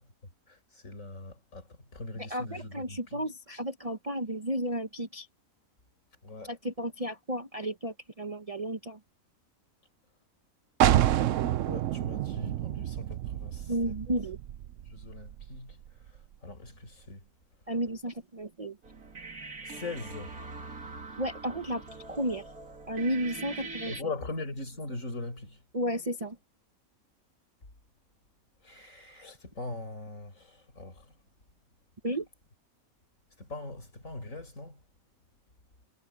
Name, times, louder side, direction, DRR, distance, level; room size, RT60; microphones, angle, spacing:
voice 1, 0.5-3.2 6.2-6.5 11.7-13.9 14.9-15.8 16.4-17.2 19.7-20.4 23.9-25.6 28.6-31.1 33.4-34.8, left 3 dB, 60° left, 5.1 m, -41 dB
voice 2, 2.2-5.3 6.4-9.0 13.7-14.4 17.7-18.8 21.2-21.8 22.1-22.5 22.9-23.9 25.7-26.4 32.0-32.3, right 1 dB, 30° right, 0.9 m, -33 dB
sound 1, 10.8-16.4, right 12 dB, 70° right, 0.9 m, -29 dB
sound 2, 18.8-24.0, right 4 dB, 85° right, 3.0 m, -43 dB
omnidirectional pair, 1.5 m